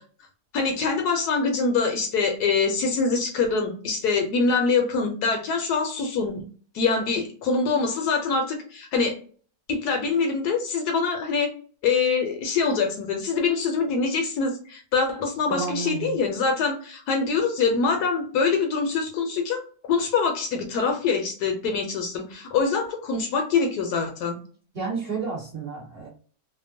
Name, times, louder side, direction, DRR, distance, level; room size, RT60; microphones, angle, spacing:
voice 1, 0.5-6.5 6.7-9.2 9.7-11.5 11.8-19.6 19.9-24.4, left 4 dB, 75° left, 3 dB, 1.1 m, -24 dB
voice 2, 15.5-16.2 24.7-26.1, right 4 dB, 35° right, -5 dB, 1.3 m, -31 dB
2.8 x 2.1 x 2.5 m, 0.43 s
omnidirectional pair, 1.8 m